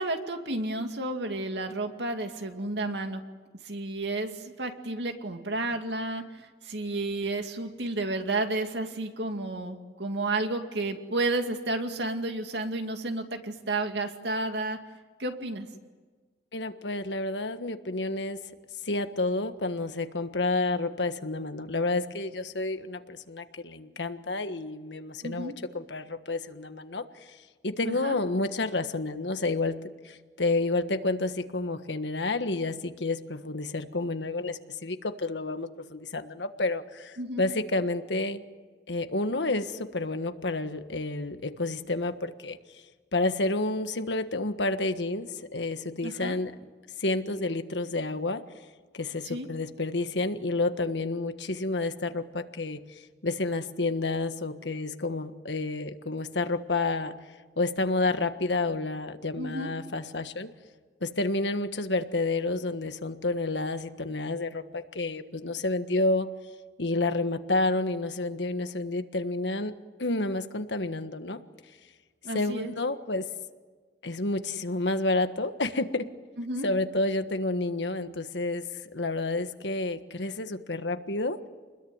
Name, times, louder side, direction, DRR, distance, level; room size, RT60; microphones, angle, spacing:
voice 1, 0.0-3.2 3.6-6.2 6.6-14.8 15.2-15.7 25.2-25.5 27.8-28.2 37.2-37.4 46.0-46.4 49.2-49.5 59.4-59.7 72.2-72.7 76.4-76.7, right 2 dB, 70° right, 5 dB, 2.5 m, -31 dB
voice 2, 16.5-18.4 18.8-27.4 27.6-29.8 30.0-38.4 38.9-42.8 43.1-46.5 47.0-48.4 48.9-57.1 57.6-60.5 61.0-66.3 66.8-71.4 72.3-73.3 74.0-76.1 76.6-81.4, left 2 dB, 85° left, 9 dB, 1.5 m, -30 dB
29.0 x 21.0 x 9.6 m, 1.4 s
head